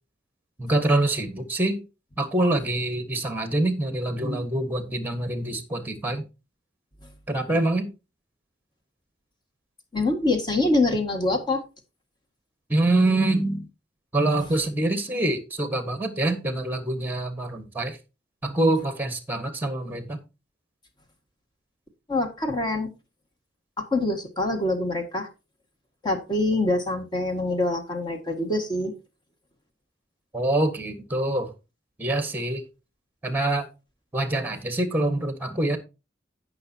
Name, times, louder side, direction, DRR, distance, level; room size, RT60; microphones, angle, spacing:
voice 1, 0.6-1.8 2.2-6.2 7.3-7.9 12.7-13.7 14.1-18.0 18.4-20.2 30.3-31.5 32.0-32.7 33.2-33.7 34.1-35.8, right 2 dB, 10° right, 9 dB, 1.4 m, -25 dB
voice 2, 9.9-11.6 22.1-22.9 23.8-25.3 26.0-28.9, left 2 dB, 25° left, 3 dB, 1.8 m, -25 dB
16.5 x 6.0 x 2.8 m, 0.29 s
head